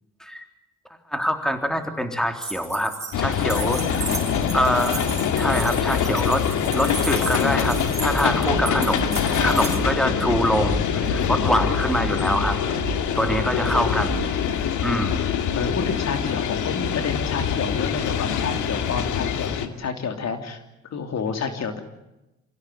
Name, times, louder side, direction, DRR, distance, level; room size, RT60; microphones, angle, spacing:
voice 1, 1.1-4.2 4.5-5.0 5.3-12.6 13.2-14.3 14.8-15.3, equal, ahead, 6 dB, 3.5 m, -25 dB
sound 1, 2.4-9.8, right 3 dB, 20° right, 5.7 m, -35 dB
sound 2, 3.1-19.7, left 8 dB, 80° left, 2.3 m, -24 dB
voice 2, 3.6-4.5 15.5-20.6 20.9-21.8, left 5 dB, 60° left, 6 dB, 3.2 m, -30 dB
sound 3, 7.6-14.4, right 3 dB, 45° right, 5.0 m, -33 dB
27.0 x 16.5 x 9.4 m, 0.94 s
cardioid pair, 90°, 30 cm